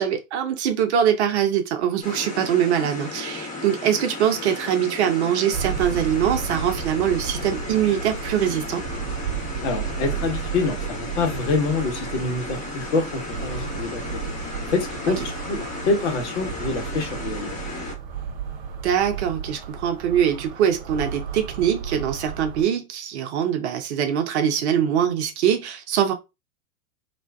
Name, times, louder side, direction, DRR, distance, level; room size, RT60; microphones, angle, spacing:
voice 1, 0.0-8.8 18.8-26.1, right 9 dB, 55° right, 0.7 m, -23 dB
sound 1, 2.0-17.9, left 3 dB, 20° left, 1.0 m, -35 dB
sound 2, 5.5-22.6, right 7 dB, 20° right, 0.3 m, -33 dB
voice 2, 9.6-14.3 14.6-17.8, left 3 dB, 55° left, 1.1 m, -26 dB
2.5 x 2.2 x 2.2 m
figure-of-eight pair, 95°, 41 cm